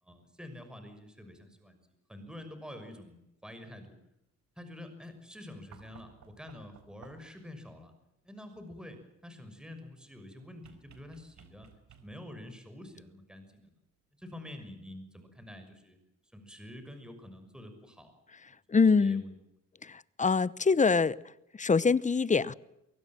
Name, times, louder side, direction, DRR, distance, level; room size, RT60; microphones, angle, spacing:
voice 1, 0.0-1.8 2.1-3.9 4.6-7.9 8.2-11.7 12.0-13.8 14.2-16.0 16.3-18.1 18.8-19.3, left 1 dB, 5° right, 6.2 m, -47 dB
sound 1, 5.7-7.5 10.6-12.4 13.9-14.0, right 7 dB, 65° right, 4.3 m, -57 dB
voice 2, 18.7-19.2 19.8-21.2 21.5-22.5, left 4 dB, 25° left, 0.9 m, -24 dB
23.5 x 23.5 x 7.5 m
cardioid pair, 90°, 30 cm